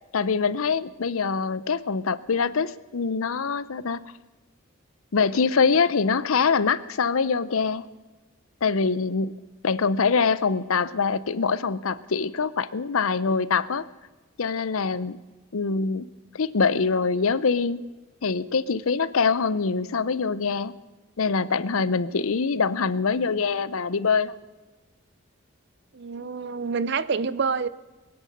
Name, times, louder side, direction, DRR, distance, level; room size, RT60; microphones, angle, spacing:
voice 1, 0.1-4.0 5.1-7.8 8.6-9.4 9.6-13.9 14.4-15.2 15.5-16.1 16.3-17.8 18.2-20.7 21.2-24.4, left 5 dB, 75° left, 17 dB, 0.6 m, -24 dB
voice 2, 25.9-27.7, right 5 dB, 50° right, 17 dB, 0.6 m, -27 dB
22.0 x 9.6 x 6.6 m, 1.2 s
head